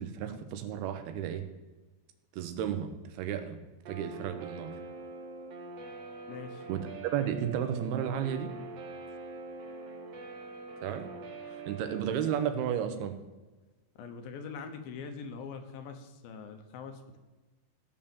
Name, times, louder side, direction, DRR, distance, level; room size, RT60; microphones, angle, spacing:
voice 1, 0.0-1.4 2.3-3.6 3.9-4.8 6.7-8.5 10.8-11.1 11.7-13.2, right 9 dB, 90° right, 8 dB, 3.0 m, -33 dB
Guitar, 3.8-12.5, right 3 dB, 55° right, 1.9 m, -44 dB
voice 2, 6.3-6.6 14.0-17.2, left 5 dB, 75° left, 7 dB, 2.8 m, -43 dB
15.5 x 5.5 x 7.1 m, 1.2 s
omnidirectional pair, 4.4 m